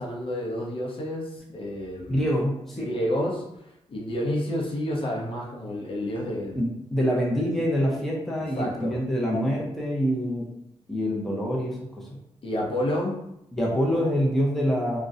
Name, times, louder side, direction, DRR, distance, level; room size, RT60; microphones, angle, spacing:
voice 1, 0.0-2.3 2.8-6.6 8.6-9.0 12.4-13.2, left 1 dB, 50° left, -2 dB, 0.6 m, -30 dB
voice 2, 2.1-2.9 6.5-6.7 6.9-10.4 10.9-11.8 12.1-12.2 13.5-15.0, equal, ahead, -4 dB, 0.5 m, -25 dB
2.5 x 2.0 x 2.4 m, 0.80 s
wide cardioid pair, 120°, 12 cm